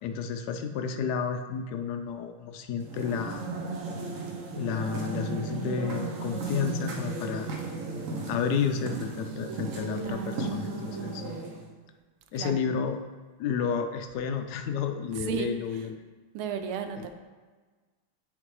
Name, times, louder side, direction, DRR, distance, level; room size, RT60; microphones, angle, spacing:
voice 1, 0.0-3.4 4.5-7.5 8.3-10.7 11.0-11.2 12.3-13.0 13.4-15.9 17.0-17.1, left 6 dB, 85° left, 6 dB, 0.8 m, -31 dB
sound 1, 2.8-11.7, right 3 dB, 55° right, 0.9 m, -35 dB
voice 2, 10.0-10.5 12.3-12.7 15.2-15.8 16.3-17.1, right 7 dB, 85° right, 7 dB, 1.5 m, -34 dB
10.0 x 4.2 x 3.2 m, 1.4 s
omnidirectional pair, 2.3 m